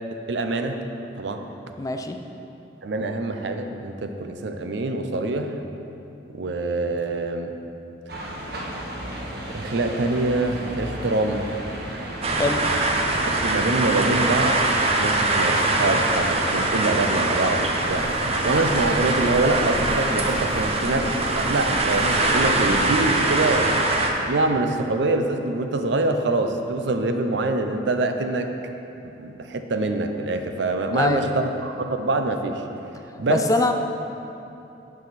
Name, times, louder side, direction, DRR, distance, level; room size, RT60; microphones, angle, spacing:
voice 1, 0.1-0.8 1.2-1.5 2.8-5.6 6.3-7.5 8.2-8.4 9.5-11.5 13.3-14.6 15.0-18.1 18.4-23.9 24.3-28.5 29.0-32.6 33.2-33.4, right 2 dB, 75° right, 6 dB, 0.5 m, -25 dB
voice 2, 1.8-2.2 12.3-12.6 30.9-31.3 33.3-33.7, left 2 dB, 20° left, 6 dB, 0.3 m, -23 dB
sound 1, 8.1-13.3, right 1 dB, 55° right, 1.0 m, -34 dB
sound 2, 12.2-24.1, right 2 dB, 35° right, 0.6 m, -23 dB
sound 3, 17.8-23.1, equal, 10° right, 1.4 m, -35 dB
10.5 x 4.9 x 4.1 m, 2.9 s
head